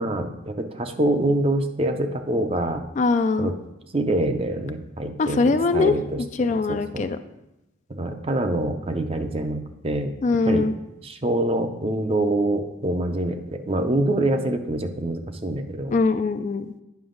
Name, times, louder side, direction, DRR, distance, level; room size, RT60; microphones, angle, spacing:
voice 1, 0.0-2.8 3.4-3.6 3.9-6.2 6.7-7.1 7.9-10.1 10.4-10.7 11.0-16.0, right 1 dB, 30° right, 7 dB, 0.6 m, -25 dB
voice 2, 3.0-3.5 5.2-5.9 6.4-7.2 10.2-10.7 15.9-16.7, left 4 dB, 40° left, 10 dB, 0.3 m, -22 dB
9.4 x 6.1 x 3.8 m, 0.92 s
head